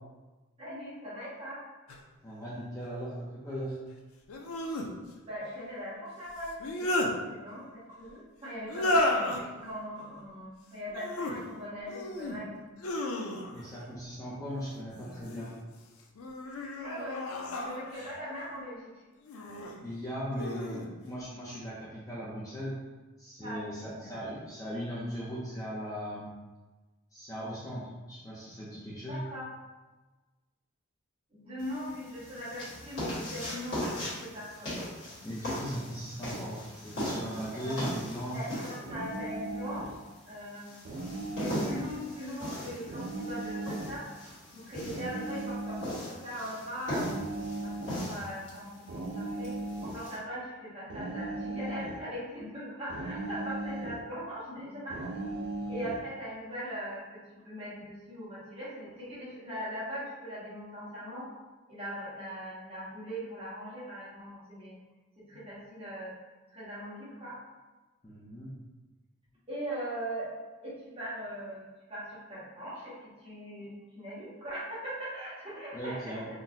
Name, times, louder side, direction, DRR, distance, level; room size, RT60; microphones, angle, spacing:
voice 1, 0.6-1.6 5.2-12.8 16.8-17.3 17.6-19.0 23.4-24.1 29.1-29.5 31.3-34.7 37.5-37.9 38.3-39.9 40.3-40.7 41.4-44.1 44.5-47.1 47.6-49.5 49.8-55.1 55.7-61.3 61.7-64.7 65.2-66.1 66.5-67.4 69.5-70.3 70.6-71.6 71.9-76.2, equal, 25° right, -10 dB, 1.1 m, -40 dB
sound 1, 1.9-2.0 4.3-4.9 6.4-7.1 8.7-9.4 10.9-11.4 11.9-12.4 12.8-13.7 14.9-15.5 16.1-18.2 19.2-19.7 20.3-20.9, left 1 dB, 85° left, 0.4 m, -32 dB
voice 2, 2.2-3.8 13.5-15.5 19.8-22.7 23.2-26.3 27.1-29.2 35.2-38.4 68.0-68.5 75.7-76.3, equal, 15° left, -8 dB, 0.5 m, -38 dB
sound 2, 31.6-50.2, equal, 60° left, 1.4 m, -39 dB
sound 3, 38.9-40.0 40.8-42.0 42.9-44.0 44.9-46.0 46.9-48.0 48.9-50.0 50.9-52.0 52.9-54.0 54.9-56.0, right 2 dB, 55° right, 0.4 m, -37 dB
3.8 x 2.1 x 2.7 m, 1.2 s
head